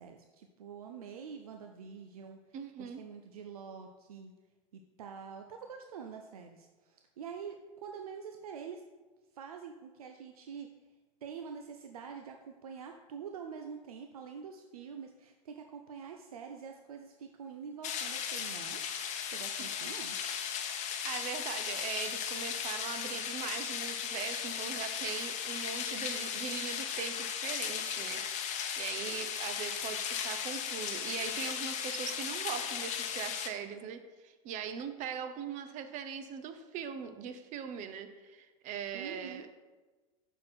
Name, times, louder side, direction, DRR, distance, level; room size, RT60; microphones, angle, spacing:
voice 1, 0.0-2.4 2.8-4.3 4.7-8.8 9.3-10.7 11.2-18.8 19.3-20.2 38.9-39.5, right 6 dB, 90° right, 4 dB, 0.5 m, -46 dB
voice 2, 2.5-3.0 21.0-39.4, right 7 dB, 45° right, 9 dB, 0.7 m, -41 dB
sound 1, 17.8-33.5, left 8 dB, 40° left, 0.8 m, -36 dB
6.2 x 4.5 x 4.3 m, 1.3 s
hypercardioid pair, 100°, 18 cm